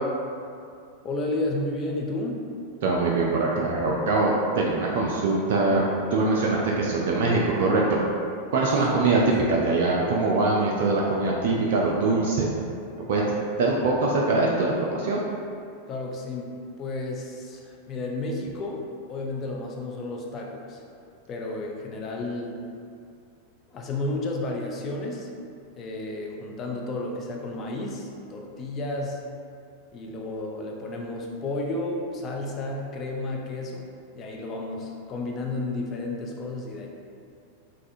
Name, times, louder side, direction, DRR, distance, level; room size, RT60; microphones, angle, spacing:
voice 1, 1.0-2.4 8.7-9.0 9.2-9.3 15.9-16.5 16.8-18.8 19.1-20.8 21.3-22.6 23.7-25.3 25.8-29.2 29.9-33.9 34.1-36.9, left 2 dB, 30° left, 0 dB, 0.4 m, -32 dB
voice 2, 2.8-8.0 8.5-9.2 9.5-12.5 13.1-13.2 13.6-15.2, right 3 dB, 55° right, -3 dB, 0.3 m, -23 dB
3.3 x 2.4 x 2.6 m, 2.4 s
figure-of-eight pair, 90°, 0 cm